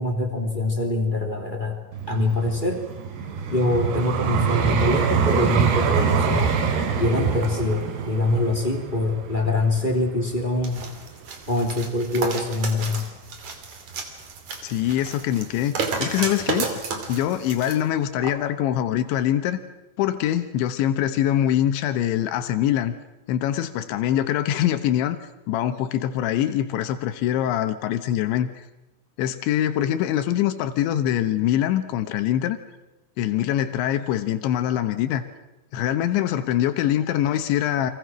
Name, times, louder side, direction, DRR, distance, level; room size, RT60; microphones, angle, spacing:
voice 1, 0.0-1.8 2.1-2.8 3.5-6.5 7.0-10.9 11.5-13.1, left 2 dB, 15° left, 4 dB, 2.4 m, -24 dB
Vehicle, 1.9-11.0 11.6-11.8, right 6 dB, 70° right, 4.2 m, -25 dB
sound 1, 10.6-17.8 18.2-18.3, right 5 dB, 45° right, 3.5 m, -32 dB
voice 2, 14.6-16.7 17.1-19.6 20.0-22.9 23.3-25.2 25.5-28.7 29.2-32.6 33.2-35.2 35.7-37.9, left 11 dB, 85° left, 9 dB, 3.5 m, -23 dB
30.0 x 24.5 x 6.2 m, 0.98 s
omnidirectional pair, 5.1 m